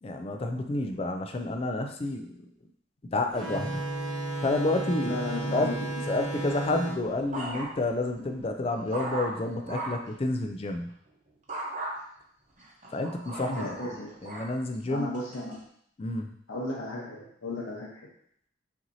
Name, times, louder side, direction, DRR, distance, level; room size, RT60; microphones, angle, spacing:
voice 1, 0.0-2.5 3.0-3.8 4.4-5.2 5.5-5.7 6.1-10.9 12.9-15.1 16.0-16.3, left 2 dB, 30° left, 5 dB, 0.3 m, -30 dB
sound 1, 3.3-8.5, right 2 dB, 5° left, 0.8 m, -34 dB
voice 2, 5.0-5.7 6.1-6.2 8.2-8.3 13.6-14.1 14.9-15.6 16.5-17.9, left 2 dB, 85° left, -5 dB, 0.9 m, -35 dB
sound 2, 6.6-8.0 8.4-10.1 11.5-11.9 12.6-14.5 15.1-15.5, right 2 dB, 35° right, 0.8 m, -37 dB
5.7 x 2.8 x 2.7 m, 0.67 s
head